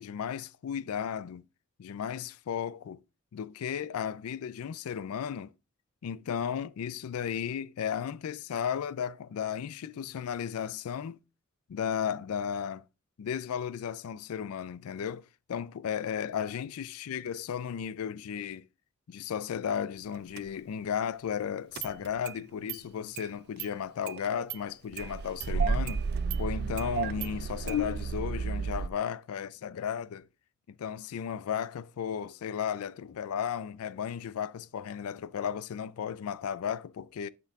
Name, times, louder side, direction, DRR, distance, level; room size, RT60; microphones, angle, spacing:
voice 1, 0.0-1.4 1.8-3.0 3.3-5.5 6.0-11.2 11.7-12.8 13.2-18.6 19.1-26.0 26.4-30.3 30.7-37.3, left 8 dB, 80° left, 0.4 m, -34 dB
Engine starting, 20.4-20.5 21.7-22.4 22.7-22.8 23.2-23.3 23.6-23.7 24.1-24.6 24.9-28.9, right 5 dB, 45° right, 0.3 m, -32 dB
11.0 x 4.5 x 3.5 m
head